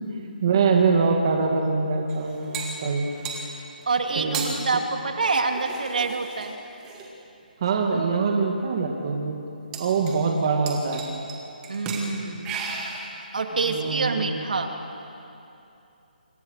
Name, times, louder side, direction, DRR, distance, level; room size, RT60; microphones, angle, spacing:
voice 1, 0.4-3.1 4.2-4.4 7.6-9.4 9.7-11.0 13.6-14.3, right 4 dB, 30° right, 1 dB, 2.2 m, -23 dB
sound 1, 2.1-3.5 4.1-4.5 5.5-7.1 7.9-8.0 8.4-8.5 8.7-8.9 9.7-10.4 10.7-11.3 11.6-12.1 12.4-13.2, right 5 dB, 10° right, 1.9 m, -35 dB
voice 2, 3.9-6.6 11.7-12.5 13.3-14.7, right 4 dB, 60° right, 4 dB, 2.6 m, -26 dB
27.5 x 26.5 x 6.6 m, 2.8 s
hypercardioid pair, 175°, 5 cm